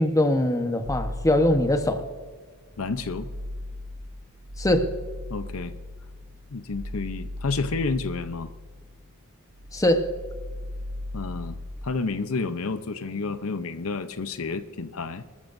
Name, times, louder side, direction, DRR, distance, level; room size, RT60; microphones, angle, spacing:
voice 1, 0.0-2.0 4.6-4.9 9.7-10.1, left 1 dB, 15° left, 6 dB, 1.1 m, -22 dB
sound 1, 0.9-2.3 2.7-9.2 9.5-11.8, left 1 dB, 90° right, 3.8 m, -37 dB
voice 2, 2.8-3.3 5.3-5.8 6.5-8.5 11.1-11.6 11.8-15.2, left 4 dB, 75° left, 11 dB, 0.7 m, -30 dB
24.5 x 13.5 x 2.7 m, 1.5 s
head